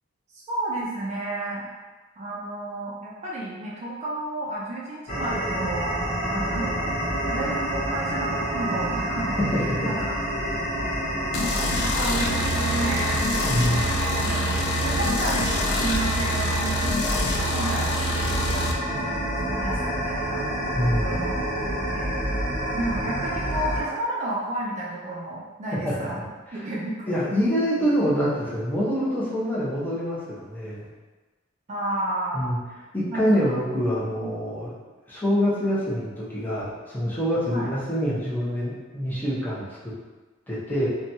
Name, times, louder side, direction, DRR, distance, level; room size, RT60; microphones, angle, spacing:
voice 1, 0.3-1.7 2.2-7.0 7.3-9.4 9.8-10.1 10.5-10.6 11.4-18.9 19.2-20.4 20.8-21.4 21.6-22.2 22.7-26.2 26.5-27.2 27.8-27.9 31.7-32.5 33.1-33.5 34.2-34.3 37.5-37.7, right 2 dB, 35° right, -6 dB, 0.4 m, -32 dB
sound 1, 5.1-23.8, right 1 dB, 40° left, 0.8 m, -28 dB
voice 2, 9.4-10.1 13.5-14.0 20.7-21.2 25.7-26.2 26.5-26.6 27.1-30.9 32.3-32.6 32.9-34.7 35.1-39.9 40.5-40.9, equal, 10° left, -7 dB, 0.6 m, -25 dB
sound 2, 11.3-18.7, left 1 dB, 55° left, 0.3 m, -27 dB
2.8 x 2.2 x 2.6 m, 1.2 s
head